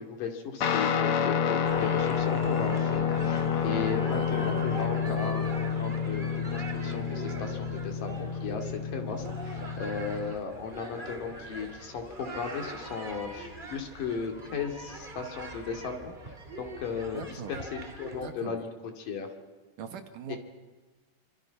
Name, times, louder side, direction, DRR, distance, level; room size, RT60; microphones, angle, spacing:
voice 1, 0.0-5.4 5.8-16.2 16.6-18.7 19.0-19.3 20.3-20.4, left 6 dB, 75° left, 4 dB, 4.2 m, -36 dB
Guitar, 0.6-10.3, left 7 dB, 60° left, 1.6 m, -29 dB
soccer men play soccer, 1.6-18.3, right 2 dB, 15° right, 1.9 m, -42 dB
voice 2, 4.1-4.5 5.1-5.4 17.1-17.5 18.2-18.6 19.8-20.4, right 7 dB, 70° right, 6 dB, 3.2 m, -41 dB
26.0 x 26.0 x 5.9 m, 1.3 s
omnidirectional pair, 3.9 m